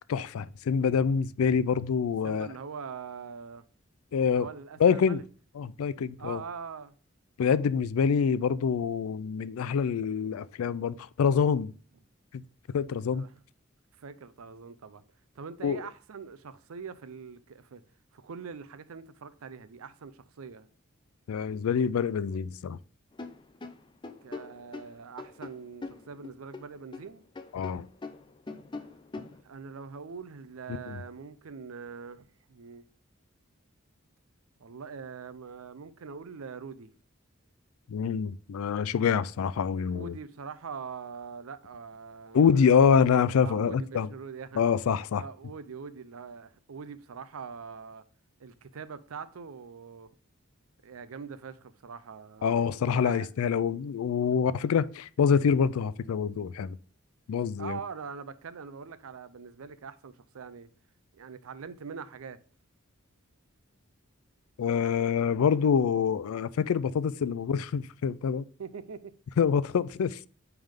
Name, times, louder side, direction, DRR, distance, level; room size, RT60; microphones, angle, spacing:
voice 1, 0.1-2.5 4.1-4.5 4.8-5.2 5.6-6.4 7.4-11.7 12.3-12.4 12.7-13.3 15.6-15.8 21.3-22.8 27.5-27.9 30.7-31.0 37.9-40.1 42.3-44.1 44.6-45.2 52.4-56.8 57.3-57.8 64.6-68.4 69.4-70.2, left 6 dB, 85° left, 0.3 m, -26 dB
voice 2, 2.2-3.6 4.2-5.2 6.2-6.9 13.1-13.4 14.0-15.0 15.4-17.8 18.1-20.7 24.2-27.2 29.4-32.8 34.6-36.9 39.9-42.6 43.4-44.6 45.1-48.0 48.4-50.1 50.8-52.4 53.0-53.3 57.6-60.7 61.1-62.4 68.6-69.1, right 5 dB, 80° right, 0.5 m, -43 dB
sound 1, 23.1-27.1 27.3-29.4, left 3 dB, 20° left, 0.4 m, -42 dB
8.9 x 3.5 x 3.5 m
head